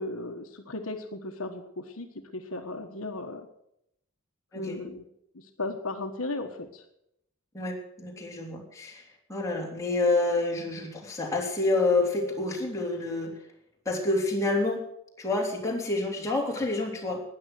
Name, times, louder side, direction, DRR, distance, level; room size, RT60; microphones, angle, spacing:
voice 1, 0.0-3.5 4.5-5.0 5.3-6.8, left 2 dB, 70° left, 5 dB, 1.4 m, -36 dB
voice 2, 7.5-9.0 9.3-13.3 13.8-14.8 15.2-17.2, left 2 dB, 15° left, -2 dB, 3.4 m, -28 dB
12.5 x 9.8 x 7.9 m, 0.78 s
head